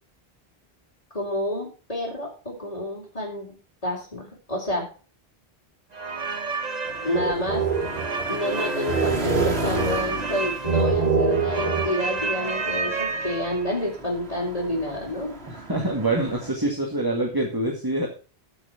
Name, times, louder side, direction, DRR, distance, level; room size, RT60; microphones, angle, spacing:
voice 1, 1.1-3.5 3.8-4.8 7.0-7.6 8.3-15.4, left 1 dB, 35° left, -6 dB, 3.9 m, -29 dB
sound 1, 5.9-13.8, right 4 dB, 40° right, 1.4 m, -26 dB
sound 2, 6.8-16.5, right 1 dB, 80° right, 2.5 m, -35 dB
voice 2, 15.5-18.1, right 2 dB, 20° right, 0 dB, 2.1 m, -25 dB
14.0 x 6.3 x 5.9 m, 0.36 s
omnidirectional pair, 1.1 m